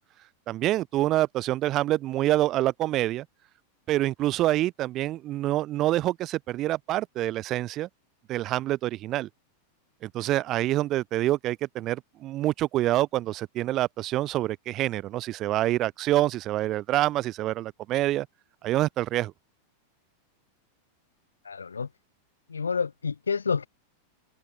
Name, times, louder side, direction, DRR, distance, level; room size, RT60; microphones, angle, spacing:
voice 1, 0.5-3.3 3.9-7.9 8.3-9.3 10.0-18.3 18.6-19.3, right 15 dB, 35° right, 0.4 m, -26 dB
voice 2, 21.4-21.9 22.5-23.7, left 5 dB, 75° left, 1.3 m, -29 dB
figure-of-eight pair, 90°, 0 cm